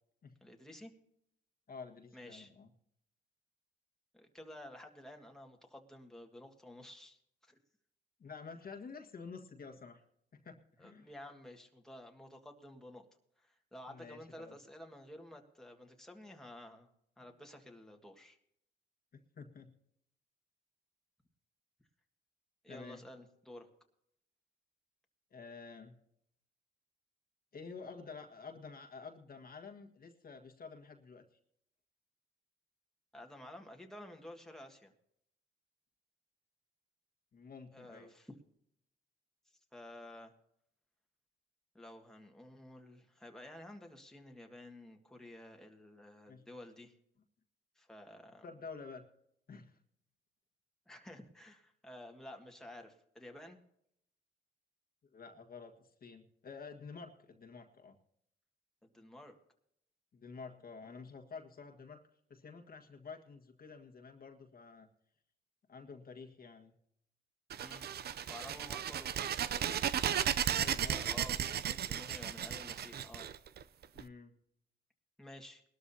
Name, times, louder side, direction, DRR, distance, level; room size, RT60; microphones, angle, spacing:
voice 1, 0.4-0.9 2.1-2.5 4.1-7.6 10.8-13.1 13.4-16.9 17.2-18.4 22.6-23.7 33.1-34.9 37.7-38.4 39.7-40.3 41.7-47.0 47.8-48.5 50.9-53.6 58.8-59.4 60.8-61.0 67.6-67.9 68.3-69.8 70.9-73.3 75.2-75.6, left 1 dB, ahead, 2 dB, 1.8 m, -52 dB
voice 2, 1.7-2.7 8.2-10.0 10.3-11.1 13.9-14.6 19.1-19.7 22.7-23.0 25.3-26.0 27.5-31.2 37.3-38.1 46.3-46.4 48.4-49.1 49.5-49.8 55.1-58.0 60.1-62.0 62.3-64.9 65.7-66.7 70.5-71.6 72.5-72.6 73.9-74.3, left 5 dB, 50° left, 3 dB, 1.6 m, -50 dB
sound 1, 67.5-74.0, right 9 dB, 55° right, 0.6 m, -35 dB
20.0 x 12.5 x 2.8 m, 0.73 s
cardioid pair, 90°, 20 cm